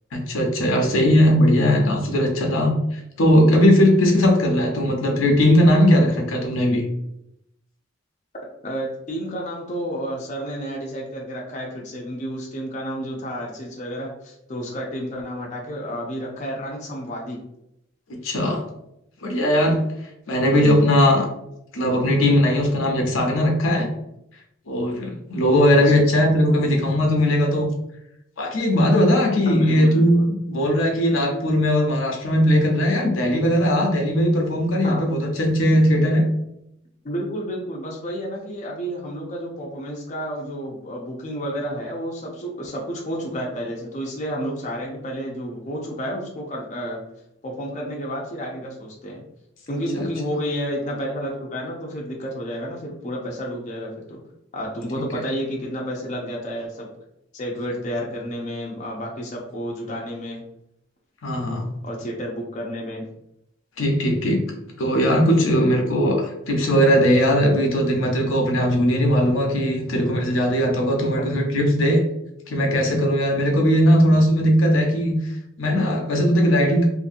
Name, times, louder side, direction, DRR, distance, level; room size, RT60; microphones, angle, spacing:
voice 1, 0.1-6.8 18.2-18.6 19.2-19.8 20.3-21.3 21.7-23.9 24.7-27.7 28.4-36.2 49.9-50.1 55.1-55.2 61.2-61.6 63.8-64.4 64.8-72.0 72.5-75.2 75.6-76.9, equal, 90° left, 1 dB, 0.6 m, -19 dB
voice 2, 8.6-17.4 20.6-21.0 25.7-26.0 29.4-30.2 34.8-35.0 37.0-47.0 47.4-49.2 49.7-54.2 54.5-56.9 57.3-60.4 61.8-63.0 71.2-71.3, equal, 35° left, -1 dB, 0.5 m, -31 dB
2.7 x 2.6 x 2.5 m, 0.81 s
head